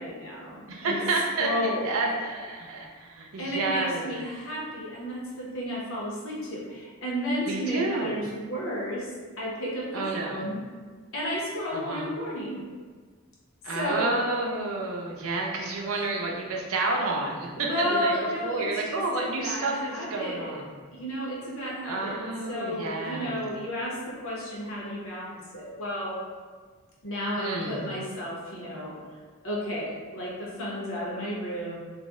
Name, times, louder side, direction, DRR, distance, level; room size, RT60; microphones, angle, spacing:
voice 1, 0.0-1.0 1.4-1.9 3.4-9.1 9.4-10.0 10.3-10.6 11.1-12.7 13.7-14.1 15.9-16.1 17.6-20.6 20.9-22.2 22.5-26.2 27.0-28.9 29.4-31.8, equal, 70° left, -4 dB, 0.8 m, -32 dB
voice 2, 0.7-1.5 1.8-4.1 7.5-8.1 9.9-10.5 11.7-12.1 13.6-18.1 18.4-20.6 21.8-23.4 27.4-27.8, right 2 dB, 85° right, 0 dB, 0.5 m, -30 dB
2.5 x 2.0 x 3.5 m, 1.5 s
head